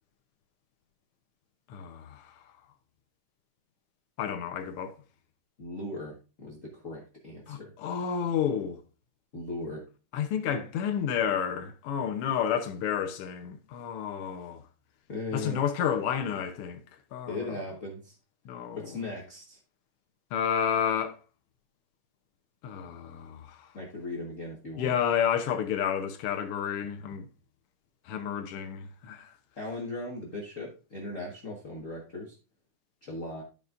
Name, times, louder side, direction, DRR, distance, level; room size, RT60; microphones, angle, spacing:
voice 1, 1.7-2.4 4.2-4.9 7.5-8.8 10.1-14.6 15.3-16.8 17.1-17.5 18.4-19.0 20.3-21.2 22.6-23.7 24.8-27.3 28.0-29.3, left 8 dB, 80° left, 1.3 m, -30 dB
voice 2, 5.6-7.7 9.3-9.8 15.1-15.6 15.9-16.0 17.3-18.1 18.7-19.6 23.7-24.9 29.6-32.3 33.0-33.4, left 2 dB, 60° left, 0.8 m, -38 dB
13.0 x 5.4 x 2.5 m
omnidirectional pair, 3.7 m